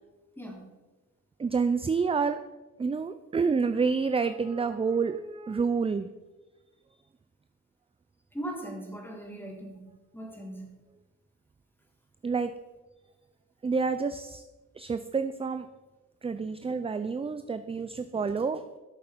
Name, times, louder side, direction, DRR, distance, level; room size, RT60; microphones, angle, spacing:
voice 1, 1.4-2.4 2.8-6.1 12.2-12.5 13.6-14.4 14.8-15.7 16.2-18.6, right 5 dB, 15° right, 11 dB, 0.4 m, -28 dB
voice 2, 8.3-9.8 10.1-10.7, right 1 dB, 5° left, -1 dB, 3.6 m, -39 dB
12.5 x 6.8 x 5.2 m, 1.2 s
cardioid pair, 90°, 35 cm